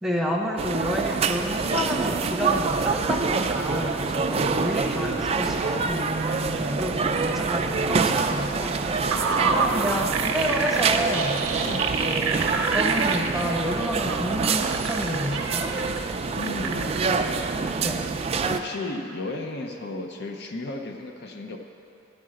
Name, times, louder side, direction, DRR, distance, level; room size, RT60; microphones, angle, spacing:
voice 1, 0.0-8.8 9.5-11.6 12.0-12.4 12.7-15.8 17.8-18.0, equal, ahead, -1 dB, 0.8 m, -29 dB
sound 1, 0.6-18.6, right 4 dB, 30° right, 0.3 m, -26 dB
voice 2, 4.3-4.6 9.2-9.5 11.6-11.9 16.3-17.0 18.5-21.6, left 2 dB, 55° left, 3 dB, 0.6 m, -34 dB
sound 2, 8.3-13.4 13.9-16.0 16.4-17.1, right 5 dB, 75° right, 0.7 m, -28 dB
10.5 x 4.7 x 7.6 m, 2.8 s
head